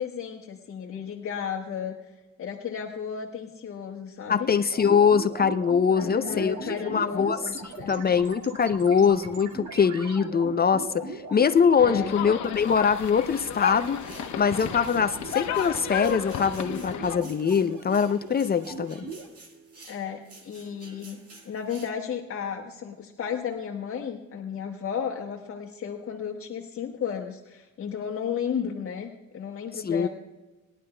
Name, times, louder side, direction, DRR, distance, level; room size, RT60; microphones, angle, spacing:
voice 1, 0.0-4.5 6.0-8.1 11.8-12.2 19.9-21.2 21.4-30.1, left 7 dB, 45° left, 0 dB, 1.2 m, -34 dB
voice 2, 4.3-6.6 6.9-7.4 7.9-14.0 14.4-19.0 29.8-30.1, left 6 dB, 30° left, 10 dB, 0.5 m, -23 dB
sound 1, 4.7-19.3, right 3 dB, 70° right, 1.9 m, -40 dB
sound 2, 11.8-17.2, left 10 dB, 65° left, 0.9 m, -33 dB
sound 3, 13.8-21.9, right 3 dB, 50° right, 1.8 m, -51 dB
21.0 x 11.0 x 2.2 m, 1.1 s
cardioid pair, 90°, 30 cm